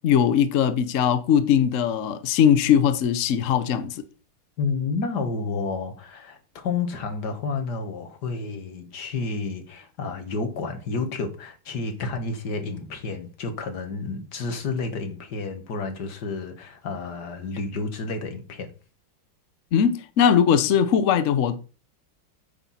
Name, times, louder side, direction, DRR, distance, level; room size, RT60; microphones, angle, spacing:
voice 1, 0.0-4.0 19.7-21.6, left 8 dB, 85° left, 0.6 m, -20 dB
voice 2, 4.6-18.7, left 4 dB, 55° left, 1.9 m, -30 dB
8.9 x 6.0 x 4.2 m
omnidirectional pair, 2.4 m